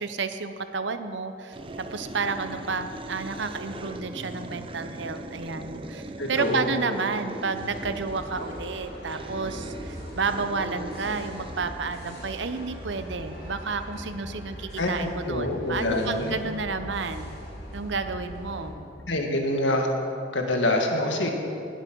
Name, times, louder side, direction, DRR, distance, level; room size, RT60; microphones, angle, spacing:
voice 1, 0.0-6.0 6.3-17.4 17.7-18.8, right 4 dB, 70° right, 9 dB, 0.8 m, -31 dB
sound 1, 1.5-14.4, right 1 dB, 30° right, 0.7 m, -40 dB
voice 2, 6.2-6.7 14.8-16.4 18.7-18.8 19.1-19.9 20.3-21.3, left 1 dB, 75° left, 2 dB, 1.9 m, -26 dB
sound 2, 7.5-18.7, equal, 55° left, 3.6 m, -41 dB
18.5 x 8.3 x 6.1 m, 2.7 s
head